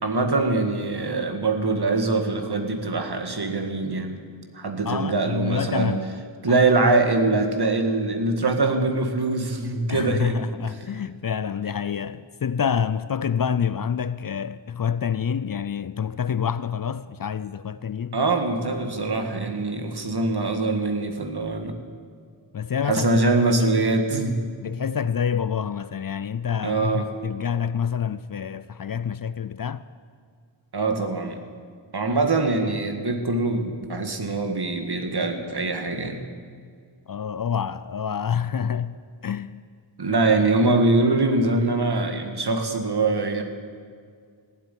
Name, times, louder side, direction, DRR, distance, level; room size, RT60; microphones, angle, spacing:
voice 1, 0.0-4.1 4.5-6.0 6.4-10.4 18.1-21.8 22.8-24.4 26.6-27.1 30.7-31.4 31.9-36.2 40.0-43.4, right 3 dB, 55° right, 1.8 m, -23 dB
voice 2, 4.9-6.2 9.9-18.2 22.5-23.2 24.6-29.8 37.1-39.0 39.2-39.6 40.1-40.3, left 7 dB, 45° left, 0.5 m, -27 dB
16.0 x 7.9 x 10.0 m
wide cardioid pair, 65°, 47 cm